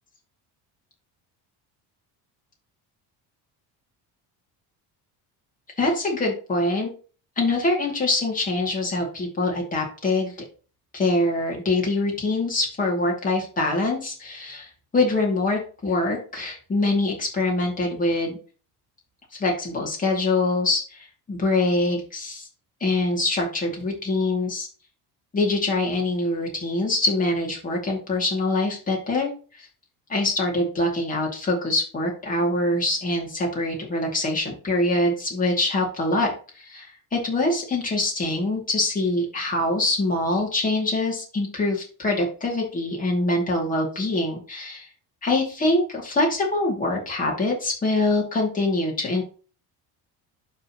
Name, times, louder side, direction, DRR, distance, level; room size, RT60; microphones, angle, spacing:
voice 1, 5.8-6.9 7.4-10.3 10.9-18.4 19.3-22.5 22.8-24.7 25.3-29.3 29.6-29.7 30.1-44.9 45.2-49.2, left 2 dB, 20° left, -1 dB, 2.6 m, -24 dB
12.0 x 4.1 x 3.0 m, 0.37 s
cardioid pair, 165°, 40 cm